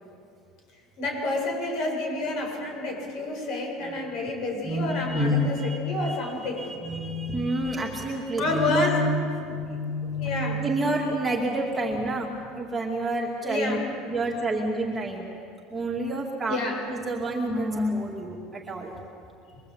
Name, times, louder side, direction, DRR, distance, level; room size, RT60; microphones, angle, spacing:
voice 1, 1.0-6.7 8.4-9.0 9.7-9.8 10.2-10.6 13.5-13.8 16.5-16.8, left 2 dB, 50° left, 1 dB, 7.6 m, -29 dB
voice 2, 4.6-13.8 14.1-15.3 15.7-16.6 16.9-18.9, right 1 dB, 10° right, -2 dB, 2.4 m, -28 dB
26.0 x 22.5 x 8.2 m, 2.4 s
cardioid pair, 170°, 0 cm